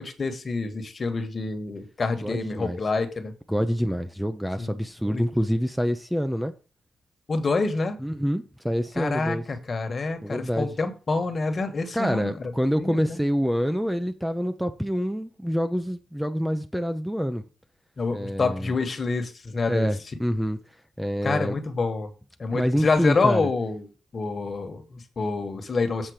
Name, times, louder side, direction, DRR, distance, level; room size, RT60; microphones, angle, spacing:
voice 1, 0.0-3.3 4.6-4.8 5.1-5.2 7.3-8.0 9.0-13.2 18.0-19.9 21.2-22.1 22.4-23.9 24.1-26.1, left 3 dB, 40° left, 1.6 m, -27 dB
voice 2, 2.2-2.8 3.5-6.5 8.0-9.4 10.2-10.7 11.9-17.4 18.1-18.7 19.7-20.6 21.0-21.6 22.5-23.5, equal, ahead, 0.7 m, -26 dB
7.7 x 4.3 x 6.6 m
cardioid pair, 85°, 0 cm